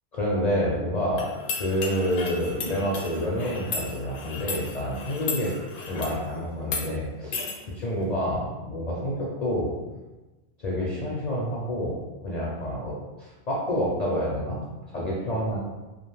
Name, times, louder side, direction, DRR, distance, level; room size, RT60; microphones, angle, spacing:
voice 1, 0.1-5.5 5.9-7.4 7.7-9.7 10.6-14.6 14.9-15.6, equal, 50° left, -5 dB, 0.5 m, -28 dB
sound 1, 1.2-6.2 6.6-6.9 7.3-7.6, left 4 dB, 75° left, 0.9 m, -34 dB
2.5 x 2.3 x 3.1 m, 1.1 s
omnidirectional pair, 1.1 m